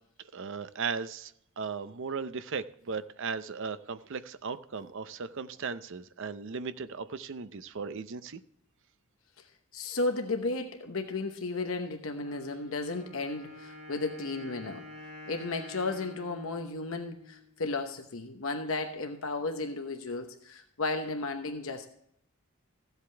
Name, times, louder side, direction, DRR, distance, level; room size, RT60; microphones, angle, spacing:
voice 1, 0.3-8.4, right 5 dB, 60° right, 12 dB, 0.6 m, -37 dB
voice 2, 9.7-14.9 15.3-21.9, left 3 dB, 65° left, 5 dB, 1.0 m, -34 dB
Wind instrument woodwind instrument, 12.2-17.9, left 2 dB, 40° right, 5.4 m, -48 dB
14.5 x 8.1 x 3.4 m, 0.71 s
head